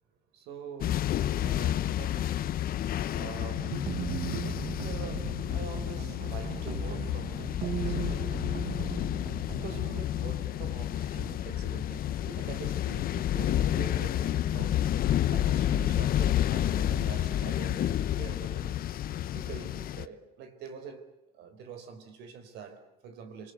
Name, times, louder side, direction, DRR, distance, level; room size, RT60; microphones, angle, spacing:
voice 1, 0.3-1.2 1.4-2.5 3.1-8.4 9.5-14.9 15.3-18.9 19.3-23.5, right 6 dB, 85° right, 4.1 m, -44 dB
sound 1, 0.8-20.1, left 11 dB, 60° left, 1.0 m, -30 dB
sound 2, 3.6-10.0, right 8 dB, 50° right, 1.1 m, -38 dB
27.5 x 24.5 x 8.3 m
cardioid pair, 110°, 17 cm